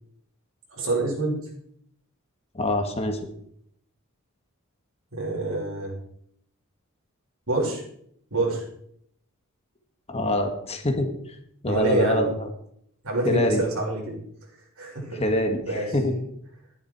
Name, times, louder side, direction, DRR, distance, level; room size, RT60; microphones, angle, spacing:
voice 1, 0.7-1.5 5.1-5.9 7.5-7.8 8.3-8.7 11.7-12.3 13.0-14.2 14.8-15.2 15.7-16.0, right 2 dB, 75° right, -3 dB, 6.5 m, -26 dB
voice 2, 2.6-3.2 10.1-11.1 11.6-12.3 13.2-13.7 15.2-16.2, left 1 dB, 30° left, 5 dB, 1.6 m, -24 dB
13.5 x 11.0 x 4.8 m, 0.68 s
head